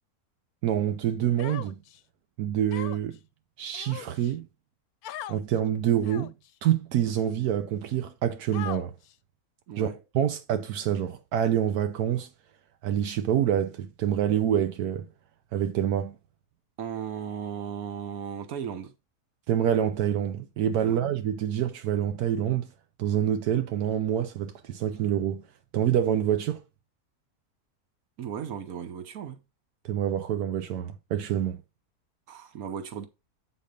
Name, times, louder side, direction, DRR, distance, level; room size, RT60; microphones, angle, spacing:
voice 1, 0.6-1.8 2.4-3.2 3.6-4.5 5.3-6.3 6.6-8.9 9.8-9.9 10.1-12.3 12.8-15.1 15.5-16.2 19.5-22.7 23.0-25.5 25.7-26.6 29.8-31.6, right 10 dB, 85° right, 1.2 m, -26 dB
Human voice, 1.4-2.0 2.7-3.2 3.7-4.3 5.0-5.4 6.0-6.5 7.2-7.3 8.5-9.1, left 11 dB, 80° left, 1.1 m, -39 dB
voice 2, 9.7-10.0 16.8-18.9 20.8-21.0 28.2-29.4 32.3-33.1, right 8 dB, 70° right, 1.5 m, -36 dB
8.4 x 4.3 x 5.1 m
omnidirectional pair, 1.6 m